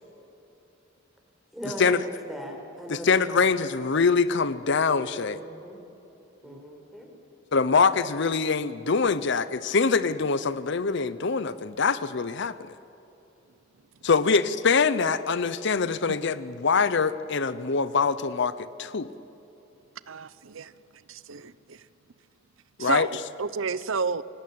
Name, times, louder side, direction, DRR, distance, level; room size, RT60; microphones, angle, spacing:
voice 1, 1.5-3.5 5.0-5.8 6.4-7.1, equal, ahead, 4.5 m, -39 dB
voice 2, 2.9-5.4 7.5-12.6 14.0-18.5 18.8-19.1 22.8-23.1, left 5 dB, 60° left, 0.7 m, -24 dB
voice 3, 20.1-20.7 21.1-21.8 22.8-23.1 23.4-24.2, right 5 dB, 80° right, 0.7 m, -31 dB
28.5 x 19.0 x 8.6 m
head